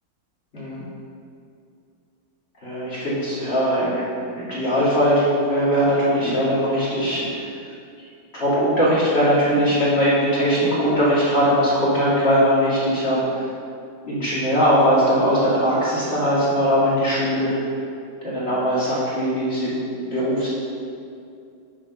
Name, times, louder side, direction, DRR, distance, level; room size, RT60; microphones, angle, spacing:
voice 1, 2.6-7.4 8.3-13.5 14.1-17.6 18.2-20.5, equal, 40° left, -10 dB, 2.6 m, -20 dB
7.2 x 5.0 x 6.6 m, 2.5 s
omnidirectional pair, 1.7 m